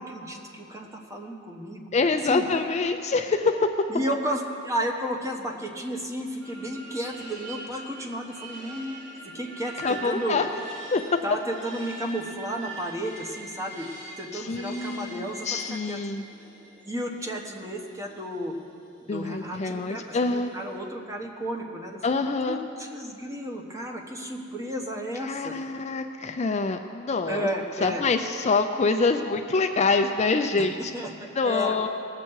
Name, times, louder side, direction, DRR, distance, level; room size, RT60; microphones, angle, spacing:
voice 1, 0.0-1.9 2.2-2.5 3.9-9.0 9.3-10.4 11.2-13.9 14.2-15.6 15.9-16.0 16.9-18.5 19.0-22.2 22.5-25.6 27.2-28.0 30.9-31.9, equal, 15° right, 2 dB, 1.1 m, -33 dB
voice 2, 1.9-3.7 9.8-10.5 10.9-11.0 14.3-16.2 19.1-20.5 22.0-22.6 25.2-27.5 27.8-30.9 31.4-31.9, left 4 dB, 35° left, 6 dB, 0.4 m, -25 dB
sound 1, 6.4-20.8, right 1 dB, 40° right, 3.4 m, -44 dB
19.0 x 7.6 x 4.7 m, 2.5 s
head